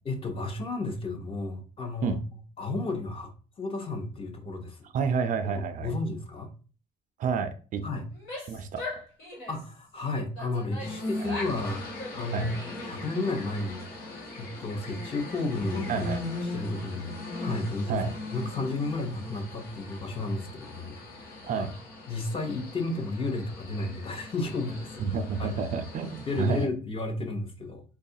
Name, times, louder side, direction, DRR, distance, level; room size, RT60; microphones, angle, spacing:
voice 1, 0.1-2.2 2.6-3.3 3.6-4.8 5.8-6.5 7.8-8.1 9.5-12.5 12.8-16.1 16.4-17.1 17.4-18.0 18.3-21.6 22.1-25.0 25.4-25.5 26.3-27.8, left 2 dB, 35° left, 4 dB, 0.7 m, -32 dB
voice 2, 4.9-5.9 7.2-7.8 8.5-8.8 12.3-12.5 15.9-16.4 17.9-18.1 21.4-21.7 25.0-26.7, right 6 dB, 50° right, 9 dB, 0.4 m, -29 dB
Female speech woman speaking / Yell, 8.1-9.7 10.3-11.6 11.9-12.9, left 2 dB, 90° left, 1.6 m, -40 dB
sound 1, 10.8-26.6, left 2 dB, 65° left, 1.0 m, -39 dB
3.3 x 2.3 x 2.6 m, 0.37 s
cardioid pair, 110°, 17 cm